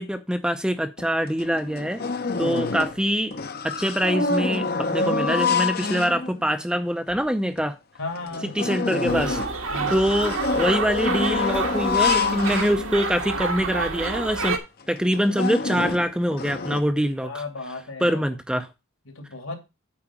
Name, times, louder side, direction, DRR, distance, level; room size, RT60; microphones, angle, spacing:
voice 1, 0.0-2.0 2.4-3.3 3.6-4.7 4.9-7.8 8.6-9.4 9.9-14.6 14.9-17.4 18.0-18.7, equal, 5° right, 0.5 m, -24 dB
sound 1, 1.0-1.1 1.4-3.1 3.3-6.5 7.1-7.2 7.6-7.7 8.1-13.3 13.9-14.0 14.3-14.5 15.0-16.8, left 4 dB, 45° left, 0.8 m, -27 dB
voice 2, 8.0-8.5 9.7-9.9 17.2-18.2 19.1-19.5, left 3 dB, 75° left, 2.6 m, -34 dB
sound 2, 9.1-14.6, right 4 dB, 70° right, 1.5 m, -28 dB
8.8 x 4.7 x 5.9 m
head